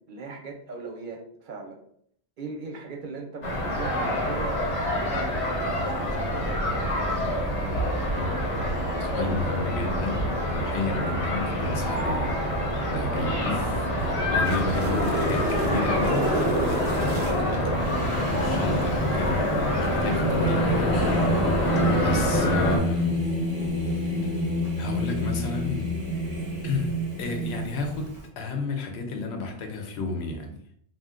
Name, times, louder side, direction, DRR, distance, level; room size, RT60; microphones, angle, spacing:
voice 1, 0.1-1.8 2.4-6.6, right 3 dB, 60° right, 2 dB, 0.6 m, -39 dB
sound 1, 3.4-22.8, equal, 35° left, 0.7 m, -26 dB
voice 2, 9.0-12.4 12.9-16.5 16.8-23.3 23.7-24.4 24.8-26.0 26.6-30.6, left 3 dB, 85° left, 4 dB, 0.9 m, -32 dB
sound 2, 14.1-17.8 21.6-21.8, right 2 dB, 90° right, 0.9 m, -31 dB
Singing, 17.8-28.2, equal, 20° right, 0.5 m, -29 dB
2.5 x 2.1 x 3.6 m, 0.65 s
omnidirectional pair, 1.1 m